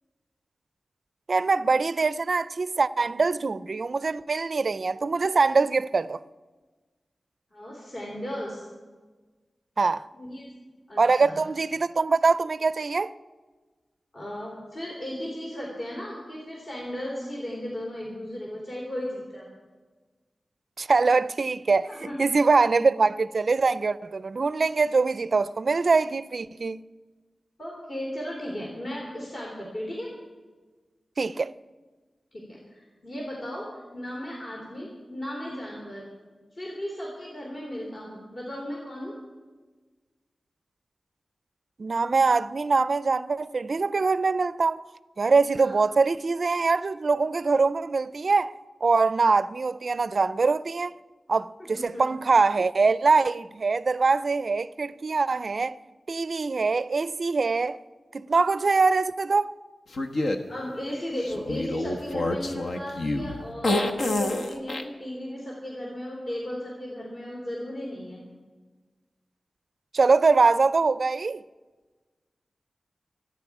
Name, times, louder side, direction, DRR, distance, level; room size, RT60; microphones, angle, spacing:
voice 1, 1.3-6.2 9.8-10.0 11.0-13.1 20.8-21.9 22.2-26.8 31.2-31.5 41.8-44.8 45.2-48.5 48.8-50.9 51.3-55.8 56.1-57.8 58.1-59.5 69.9-71.4, right 4 dB, 50° right, 0.4 m, -23 dB
voice 2, 7.5-8.6 10.1-10.5 10.9-11.4 14.1-19.5 21.9-22.2 27.6-30.1 32.3-33.7 33.9-36.1 36.5-39.1 45.5-45.8 51.6-52.0 60.5-68.2, equal, 45° left, 3.4 m, -35 dB
sound 1, 59.9-60.4 61.2-64.8, left 2 dB, 75° left, 1.2 m, -27 dB
26.5 x 9.9 x 4.8 m
wide cardioid pair, 130°, 0 cm